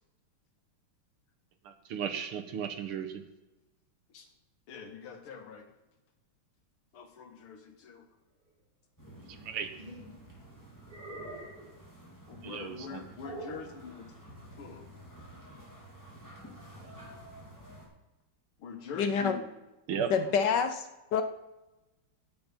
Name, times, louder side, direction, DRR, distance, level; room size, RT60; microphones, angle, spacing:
voice 1, 1.6-3.2 9.3-9.7 12.4-13.1 16.7-16.9 19.9-20.1, right 8 dB, 80° right, 8 dB, 2.0 m, -36 dB
voice 2, 4.7-5.6 6.9-8.1 12.3-14.1 14.6-14.8 18.6-19.5 20.2-20.3, left 6 dB, 80° left, 5 dB, 2.2 m, -44 dB
sound 1, 9.0-17.9, right 1 dB, 10° left, 3.0 m, -51 dB
sound 2, 9.3-10.2 10.9-11.7 13.2-13.7, right 2 dB, 25° right, 3.4 m, -44 dB
voice 3, 19.0-19.4 20.1-21.2, left 6 dB, 65° left, 8 dB, 1.2 m, -27 dB
16.0 x 6.0 x 5.2 m, 1.0 s
omnidirectional pair, 2.4 m